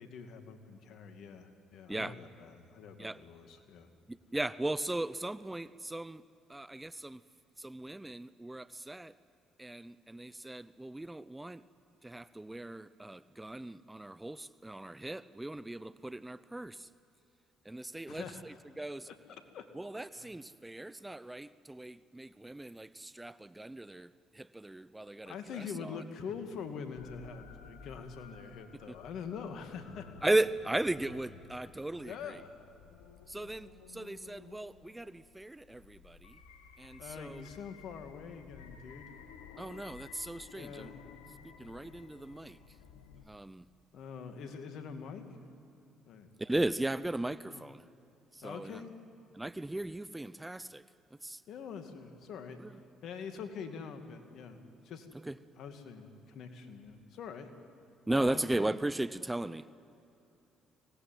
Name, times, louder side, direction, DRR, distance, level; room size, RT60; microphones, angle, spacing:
voice 1, 0.0-3.9 18.1-18.6 19.1-19.7 20.1-20.3 25.3-30.4 32.0-32.6 37.0-39.1 40.5-41.4 43.9-45.2 46.1-46.3 47.5-47.7 48.4-49.0 51.5-52.6 53.0-54.6 54.8-55.1 55.6-57.5 58.1-58.7, left 6 dB, 65° left, 7 dB, 2.4 m, -45 dB
voice 2, 4.1-6.2 6.5-7.2 7.6-9.1 9.6-11.6 12.0-16.9 17.6-19.1 19.7-26.0 28.9-29.0 30.2-32.4 33.3-36.4 36.8-37.4 39.6-40.9 41.4-42.6 43.3-43.7 46.4-47.8 48.3-48.8 49.3-50.8 51.2-51.4 52.6-52.7 55.3-55.4 58.1-59.7, right 2 dB, 15° right, 16 dB, 0.7 m, -37 dB
sound 1, 26.9-43.3, left 7 dB, 85° left, 1.6 m, -55 dB
24.5 x 18.5 x 9.4 m, 2.8 s
hypercardioid pair, 60°, 0 cm